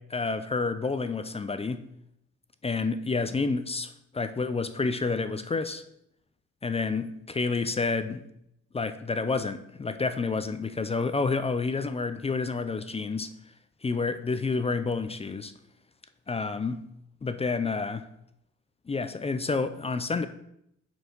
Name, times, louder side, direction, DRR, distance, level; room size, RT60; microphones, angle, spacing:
voice 1, 0.0-1.9 2.6-5.8 6.6-8.2 8.7-13.3 13.8-15.5 16.3-16.8 17.2-18.0 18.9-20.3, left 4 dB, 20° left, 10 dB, 0.5 m, -29 dB
6.3 x 4.6 x 5.2 m, 0.77 s
cardioid pair, 90°, 30 cm